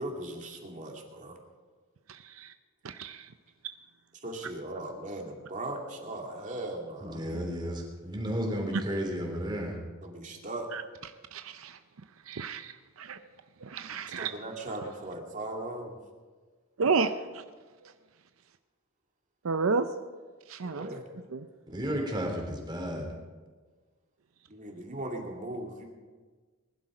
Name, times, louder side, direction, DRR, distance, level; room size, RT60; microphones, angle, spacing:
voice 1, 0.0-1.4 4.2-7.4 10.0-10.7 13.9-16.0 20.6-21.1 24.5-25.9, right 1 dB, 40° right, 2 dB, 2.4 m, -38 dB
voice 2, 2.1-2.5 2.8-3.3 10.7-10.8 11.3-11.8 12.3-13.2 13.6-14.3 16.8-17.4 19.4-19.9 20.5-20.9 21.3-21.5, right 4 dB, 85° right, 9 dB, 0.6 m, -31 dB
voice 3, 7.0-9.7 21.7-23.1, equal, 20° right, 1 dB, 3.2 m, -33 dB
20.5 x 11.5 x 5.0 m, 1.4 s
head